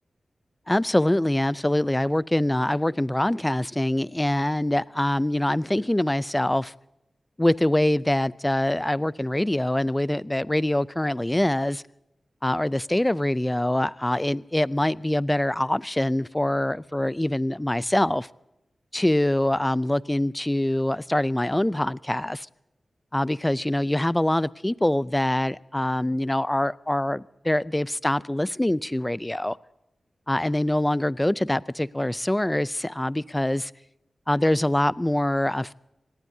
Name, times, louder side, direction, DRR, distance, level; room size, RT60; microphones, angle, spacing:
voice 1, 0.7-6.7 7.4-11.8 12.4-18.3 18.9-22.5 23.1-29.6 30.3-33.7 34.3-35.7, left 1 dB, 15° left, 0.4 m, -24 dB
25.5 x 18.5 x 2.8 m
cardioid pair, 65°, 0 cm